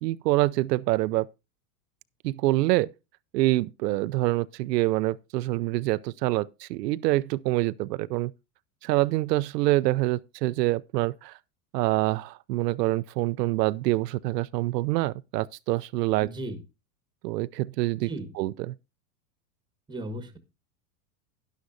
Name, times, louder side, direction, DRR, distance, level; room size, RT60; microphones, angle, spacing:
voice 1, 0.0-1.3 2.2-2.9 3.3-8.3 8.8-11.3 11.7-16.3 17.2-18.1 18.4-18.7, right 18 dB, 85° right, 0.6 m, -26 dB
voice 2, 16.2-16.6 18.0-18.3 19.9-20.4, right 1 dB, 10° right, 1.3 m, -36 dB
11.5 x 11.0 x 2.5 m
supercardioid pair, 135°, 47 cm